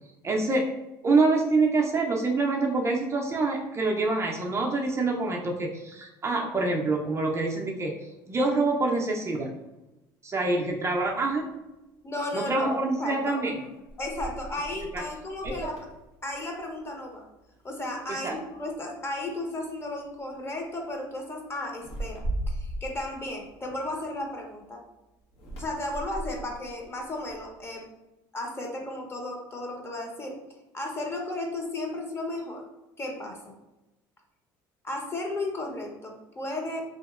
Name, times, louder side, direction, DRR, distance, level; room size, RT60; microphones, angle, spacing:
voice 1, 0.2-0.7 1.0-7.9 8.3-9.5 10.2-11.5 12.3-13.7 14.9-15.0 15.4-15.5 18.1-18.3, right 3 dB, 25° right, 0 dB, 0.4 m, -26 dB
sound 1, 11.0-11.1 13.3-16.9 17.2-17.6 18.0-18.7 19.5-19.7 20.0-20.4 21.7-24.4 25.3-27.7, right 1 dB, 75° left, 0.9 m, -38 dB
voice 2, 12.0-13.4 14.0-15.8 16.2-17.2 17.6-24.8 25.6-27.8 28.3-30.3 30.7-32.6 33.0-33.5 34.8-36.8, left 1 dB, 25° left, 1 dB, 0.7 m, -34 dB
2.8 x 2.8 x 2.3 m, 1.0 s
supercardioid pair, 85°, 10 cm